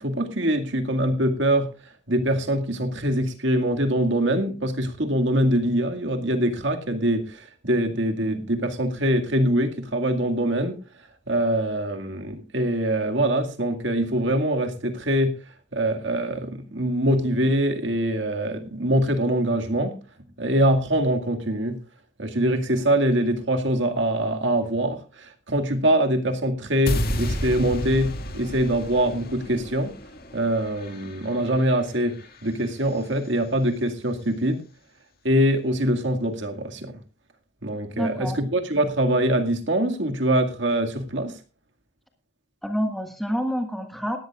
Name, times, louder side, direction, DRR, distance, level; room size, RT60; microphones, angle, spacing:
voice 1, 0.0-1.7 2.1-10.8 11.3-15.4 15.7-20.0 20.4-21.8 22.2-29.9 30.3-34.6 35.2-37.0 37.6-41.3, right 1 dB, 60° right, 5 dB, 2.1 m, -23 dB
sound 1, 26.9-33.0, equal, 45° left, 2.0 m, -32 dB
voice 2, 38.0-38.4 42.6-44.2, equal, ahead, 4 dB, 1.6 m, -27 dB
18.5 x 13.5 x 2.4 m, 0.33 s
head